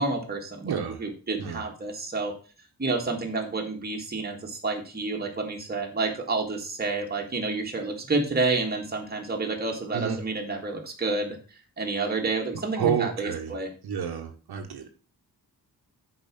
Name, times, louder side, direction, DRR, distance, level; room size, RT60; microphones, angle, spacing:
voice 1, 0.0-2.3 2.8-11.4 11.8-13.7, right 3 dB, 25° right, 1 dB, 1.8 m, -29 dB
voice 2, 0.6-1.0 1.4-1.6 9.9-10.2 12.8-13.5 13.8-14.9, right 8 dB, 85° right, 4 dB, 1.4 m, -29 dB
6.6 x 4.9 x 6.0 m, 0.37 s
wide cardioid pair, 140°, 38 cm